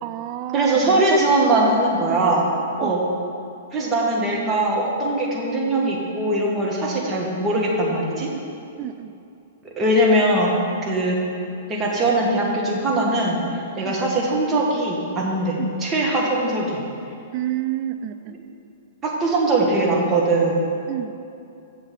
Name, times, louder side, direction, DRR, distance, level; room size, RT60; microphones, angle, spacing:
voice 1, 0.0-1.2 1.6-1.7 2.1-2.3 2.8-3.0 8.8-9.2 13.8-14.0 15.6-15.7 17.3-18.4 20.9-21.1, right 13 dB, 40° right, 11 dB, 0.4 m, -29 dB
voice 2, 0.5-2.4 2.8-3.0 3.7-8.3 9.8-10.5 10.8-11.2 11.7-13.4 13.7-16.8 18.3-18.4 19.0-20.5, right 2 dB, 20° right, -2 dB, 1.7 m, -21 dB
7.2 x 6.8 x 5.6 m, 2.6 s
figure-of-eight pair, 110°, 0 cm